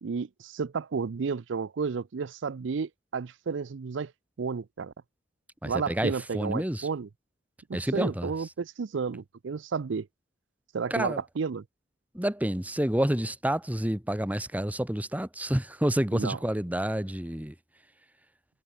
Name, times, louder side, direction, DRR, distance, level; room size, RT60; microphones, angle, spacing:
voice 1, 0.0-4.1 4.4-4.9 5.6-7.1 7.7-10.1 10.7-11.6 16.1-16.4, right 5 dB, 75° right, 0.5 m, -32 dB
voice 2, 5.6-6.9 7.7-8.3 10.9-11.2 12.1-17.5, right 1 dB, 10° right, 1.2 m, -29 dB
head